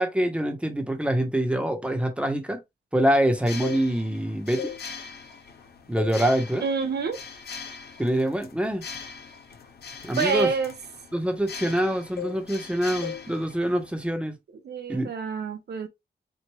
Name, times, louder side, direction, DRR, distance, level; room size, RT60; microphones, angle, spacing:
voice 1, 0.0-2.6 2.9-4.7 5.9-6.6 8.0-8.8 10.0-10.5 11.1-14.3 14.9-15.1, right 1 dB, 5° right, 1.1 m, -25 dB
sound 1, 3.3-14.1, left 5 dB, 85° left, 1.0 m, -42 dB
sound 2, 3.4-4.2 4.5-5.6 6.0-6.3 6.7-6.9 7.5-7.7 8.0-11.9 12.2-12.7 13.0-13.3 13.6-13.8, left 10 dB, 70° left, 0.6 m, -39 dB
voice 2, 6.6-7.2 10.2-10.8 14.6-15.9, right 5 dB, 80° right, 0.9 m, -27 dB
4.7 x 2.5 x 3.1 m
wide cardioid pair, 90°, 17 cm